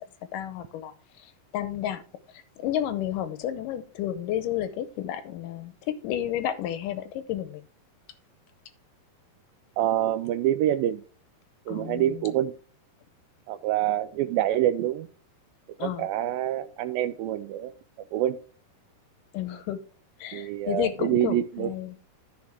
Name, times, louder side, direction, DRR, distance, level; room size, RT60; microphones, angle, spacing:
voice 1, 0.3-0.9 1.5-2.0 2.6-7.6 11.7-12.2 15.8-16.1 19.3-19.8 20.2-21.9, left 11 dB, 75° left, 11 dB, 2.1 m, -31 dB
voice 2, 9.8-11.0 11.7-12.5 13.5-15.1 15.8-17.7 18.1-18.4 20.3-21.7, right 12 dB, 80° right, 12 dB, 2.2 m, -26 dB
14.0 x 4.9 x 3.5 m, 0.40 s
omnidirectional pair, 4.4 m